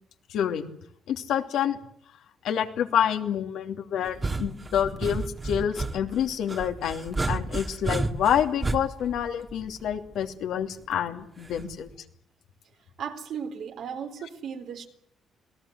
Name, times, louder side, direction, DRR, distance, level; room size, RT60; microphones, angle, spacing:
voice 1, 0.3-0.7 1.1-1.8 2.4-11.9, left 9 dB, 80° left, 5 dB, 2.8 m, -28 dB
sound 1, 4.1-10.1 11.5-11.9, right 3 dB, 25° right, 2.0 m, -32 dB
voice 2, 13.0-14.9, right 7 dB, 70° right, 5 dB, 3.9 m, -36 dB
28.0 x 19.0 x 8.2 m, 0.68 s
cardioid pair, 85°, 0 cm